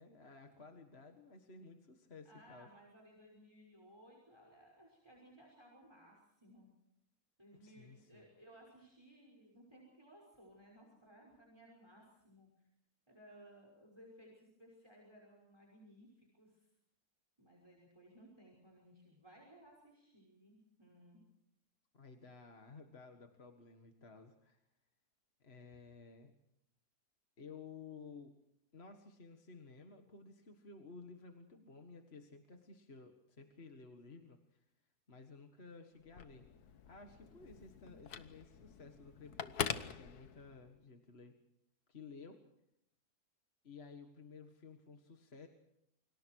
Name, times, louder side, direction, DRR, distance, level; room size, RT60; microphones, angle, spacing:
voice 1, 0.0-2.7 7.6-8.2 21.9-24.6 25.4-26.3 27.4-28.3 28.7-34.6 35.1-36.5 36.9-41.4 41.9-42.4 43.6-45.5, left 4 dB, 40° left, 5 dB, 2.0 m, -55 dB
voice 2, 2.2-6.7 7.4-12.5 13.1-16.7 17.4-21.2, equal, 15° right, -1 dB, 5.8 m, -61 dB
Telephone, 36.0-40.8, left 8 dB, 80° left, 1.6 m, -44 dB
28.5 x 25.5 x 4.7 m, 0.78 s
omnidirectional pair, 1.6 m